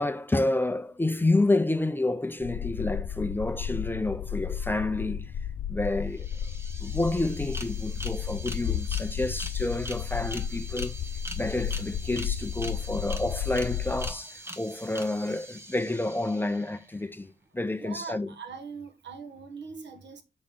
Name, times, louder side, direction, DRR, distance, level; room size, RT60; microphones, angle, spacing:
voice 1, 0.0-5.3 5.7-6.3 6.8-18.3, left 2 dB, 10° left, 0.5 m, -29 dB
sound 1, 2.4-14.1, left 9 dB, 70° left, 0.4 m, -33 dB
sound 2, 5.8-5.9 6.1-16.9, right 1 dB, 15° right, 0.9 m, -43 dB
voice 2, 17.7-20.2, right 5 dB, 70° right, 1.2 m, -41 dB
7.5 x 6.2 x 3.7 m
wide cardioid pair, 160°, 19 cm